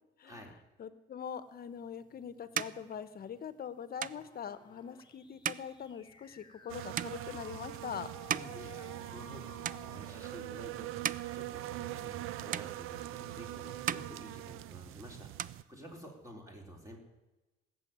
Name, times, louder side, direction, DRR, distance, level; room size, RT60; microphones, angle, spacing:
voice 1, 0.2-0.5 0.8-8.1, left 8 dB, 45° left, 14 dB, 1.1 m, -43 dB
sound 1, 1.7-9.4 9.6-10.3 10.8-12.2 12.5-13.4 13.7-14.9 15.2-16.3, right 9 dB, 40° right, 0.5 m, -41 dB
sound 2, 4.1-10.7, left 5 dB, 20° left, 1.4 m, -57 dB
sound 3, 6.7-15.6, right 15 dB, 85° right, 0.7 m, -42 dB
voice 2, 8.3-10.9 11.3-17.0, equal, 15° right, 2 dB, 3.9 m, -50 dB
18.0 x 7.3 x 9.5 m, 1.1 s
cardioid pair, 115°, 21 cm